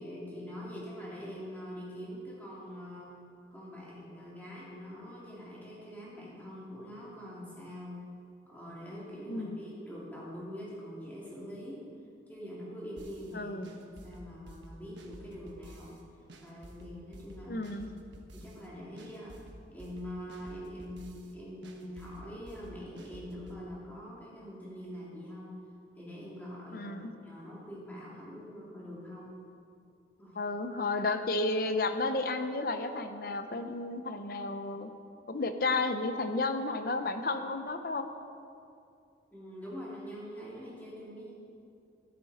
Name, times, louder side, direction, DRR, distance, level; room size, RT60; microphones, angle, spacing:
voice 1, 0.0-3.1 3.5-8.0 8.4-11.9 12.3-13.6 13.8-16.0 16.4-17.6 18.3-19.4 19.7-25.6 26.0-27.0 27.2-29.3 30.2-30.4 39.3-41.3, equal, 10° left, -7 dB, 2.8 m, -44 dB
voice 2, 9.3-9.6 13.3-13.7 17.5-17.9 26.7-27.1 30.3-34.9 35.3-38.1, left 3 dB, 50° left, 8 dB, 0.7 m, -32 dB
sound 1, 13.0-13.3 13.6-16.0 16.3-18.7 19.0-21.3 21.6-23.6, right 1 dB, 80° right, 1.2 m, -51 dB
13.0 x 10.5 x 4.3 m, 2.5 s
head